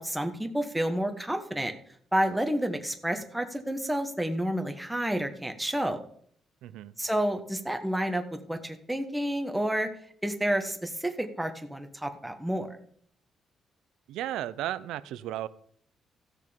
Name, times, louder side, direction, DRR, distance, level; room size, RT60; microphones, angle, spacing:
voice 1, 0.0-1.7 2.1-6.0 7.0-8.2 8.5-9.9 10.2-12.7, right 1 dB, 5° right, 5 dB, 1.3 m, -30 dB
voice 2, 6.6-6.9 14.1-15.5, right 13 dB, 90° right, 17 dB, 0.5 m, -34 dB
14.5 x 6.6 x 5.1 m, 0.63 s
cardioid pair, 90°, 0 cm